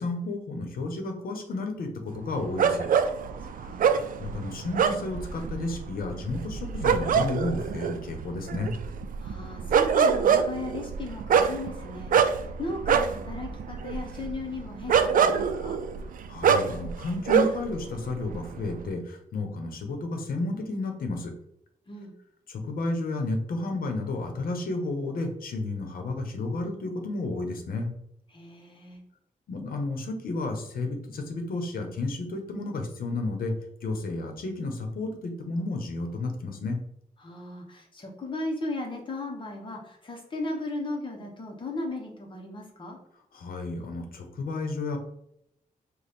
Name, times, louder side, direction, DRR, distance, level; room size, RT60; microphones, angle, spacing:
voice 1, 0.0-2.9 3.6-3.7 4.2-8.7 16.3-21.3 22.5-27.9 29.5-33.5 33.8-36.8 43.3-45.0, left 2 dB, 85° left, 4 dB, 0.9 m, -32 dB
sound 1, 2.6-17.8 18.1-18.8, right 7 dB, 70° right, 0.4 m, -25 dB
voice 2, 3.4-3.8 9.2-15.8 21.9-22.1 28.3-29.0 37.2-43.0, left 2 dB, 35° left, 0 dB, 0.8 m, -36 dB
5.1 x 2.3 x 4.2 m, 0.76 s
wide cardioid pair, 160°, 15 cm